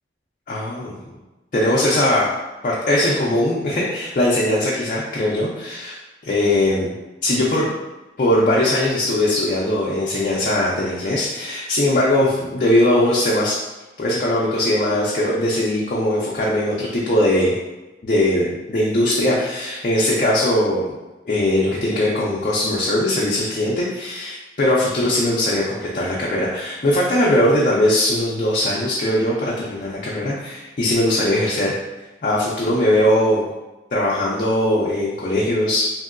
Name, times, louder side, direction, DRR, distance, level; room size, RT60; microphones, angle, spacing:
voice 1, 0.5-0.9 1.5-2.3 2.6-6.0 6.2-6.9 7.2-7.7 8.2-13.6 14.0-17.6 18.0-20.9 21.3-31.7 32.2-33.4 33.9-35.9, left 1 dB, 45° left, -5 dB, 0.4 m, -20 dB
2.9 x 2.6 x 2.4 m, 1.1 s
head